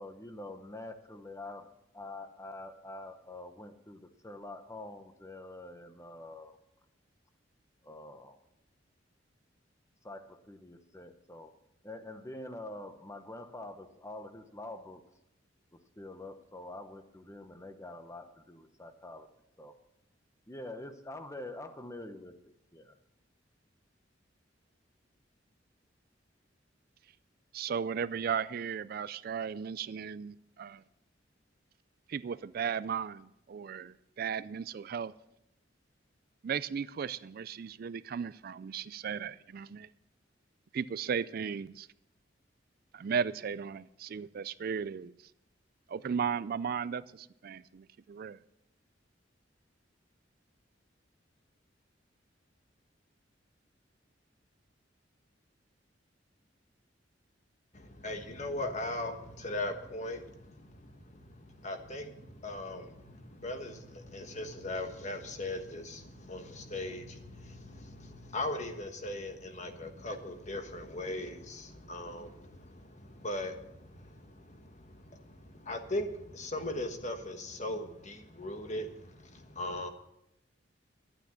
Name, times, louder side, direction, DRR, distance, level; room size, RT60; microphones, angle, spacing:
voice 1, 0.0-6.6 7.8-8.4 10.0-11.5 11.8-15.0 16.0-19.3 19.6-19.7 20.5-22.9, left 2 dB, 15° left, 8 dB, 1.0 m, -46 dB
voice 2, 27.5-30.8 32.1-35.1 36.4-39.9 40.7-41.9 42.9-45.1 45.9-48.4, right 7 dB, 50° right, 16 dB, 0.4 m, -36 dB
voice 3, 57.7-79.9, left 1 dB, 40° left, 6 dB, 1.3 m, -39 dB
11.5 x 9.1 x 7.0 m, 0.82 s
head